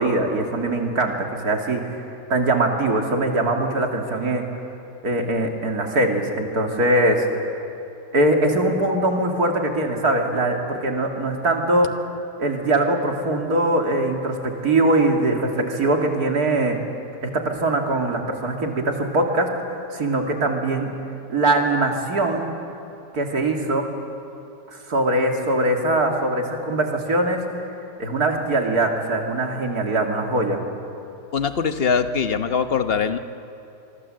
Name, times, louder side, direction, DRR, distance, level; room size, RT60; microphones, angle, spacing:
voice 1, 0.0-2.0 2.3-4.4 5.0-7.3 7.5-7.6 8.1-11.9 12.4-16.8 17.2-20.9 21.3-22.5 23.1-23.9 24.9-27.4 28.0-30.6, right 2 dB, 60° right, 2 dB, 3.0 m, -22 dB
voice 2, 31.3-33.2, left 6 dB, 40° left, 9 dB, 1.0 m, -22 dB
25.5 x 24.0 x 7.7 m, 2.8 s
omnidirectional pair, 1.8 m